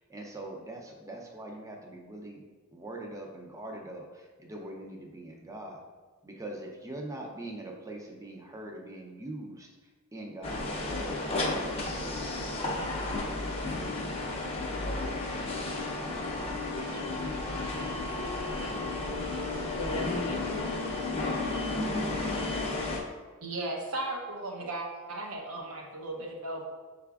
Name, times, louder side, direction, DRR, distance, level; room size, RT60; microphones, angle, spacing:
voice 1, 0.0-2.4 2.7-5.8 6.2-9.7 10.1-13.7, right 1 dB, 15° right, 1 dB, 0.5 m, -43 dB
sound 1, 10.4-23.0, left 2 dB, 25° left, 0.6 m, -33 dB
voice 2, 16.7-18.7 19.8-20.9, left 3 dB, 85° left, 2 dB, 0.6 m, -40 dB
voice 3, 23.4-26.7, right 2 dB, 75° right, 0 dB, 0.8 m, -36 dB
5.8 x 3.4 x 2.3 m, 1.4 s
head